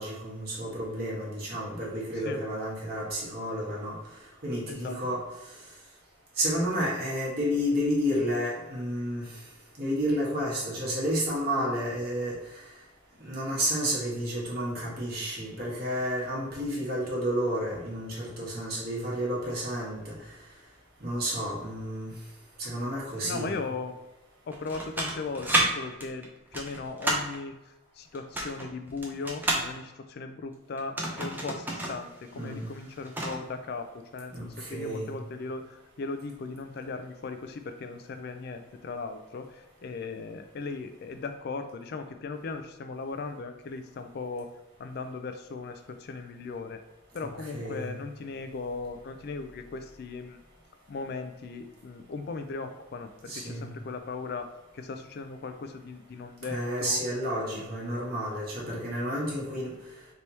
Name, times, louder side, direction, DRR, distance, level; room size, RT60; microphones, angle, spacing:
voice 1, 0.0-4.0 4.4-5.2 6.4-9.4 9.8-12.6 13.2-20.3 21.0-22.2 22.6-23.6 32.3-32.7 34.3-35.2 47.2-48.0 53.3-53.8 56.5-59.7, equal, 50° right, -5 dB, 1.4 m, -31 dB
voice 2, 4.7-5.0 23.2-24.0 24.5-44.5 44.8-46.8 47.1-50.4 50.9-54.5 54.7-57.0 57.4-57.6, left 4 dB, 55° left, 8 dB, 0.4 m, -38 dB
sound 1, 24.5-25.7 26.0-27.4 28.2-29.7 30.8-32.0 32.3-32.4 32.8-33.4, right 1 dB, 10° right, 0.6 m, -29 dB
3.4 x 2.9 x 4.1 m, 1.0 s
head